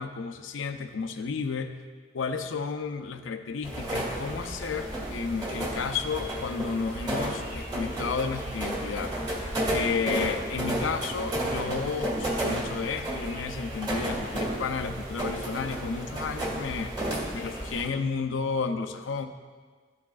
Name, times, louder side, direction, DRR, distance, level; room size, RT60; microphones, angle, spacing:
voice 1, 0.0-1.8 2.1-16.9 17.3-19.3, left 5 dB, 80° left, 7 dB, 0.5 m, -32 dB
sound 1, 3.6-17.9, right 1 dB, 25° right, 1.7 m, -32 dB
12.5 x 4.7 x 2.4 m, 1.5 s
head